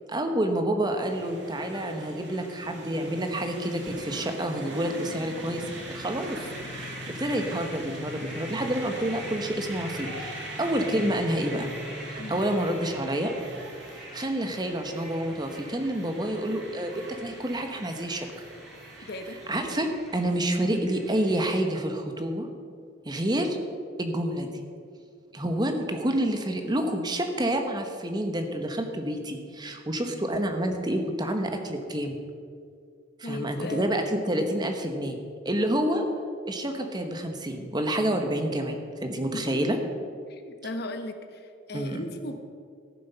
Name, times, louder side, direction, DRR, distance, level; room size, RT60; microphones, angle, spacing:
voice 1, 0.1-6.5 6.8-11.7 12.1-13.3 13.9-18.3 19.0-19.1 19.5-22.5 23.0-23.6 24.0-24.6 25.3-32.2 33.2-35.2 35.4-36.1 36.4-39.8 41.7-42.1, right 1 dB, 20° right, 5 dB, 1.0 m, -28 dB
sound 1, 1.1-19.8, right 1 dB, 60° right, 1.8 m, -41 dB
sound 2, 4.8-21.6, equal, ahead, 1.5 m, -48 dB
voice 2, 19.0-19.4 20.7-20.8 33.2-34.0 39.3-39.6 40.3-42.4, left 1 dB, 50° left, 7 dB, 1.0 m, -37 dB
14.0 x 7.6 x 5.6 m, 2.3 s
head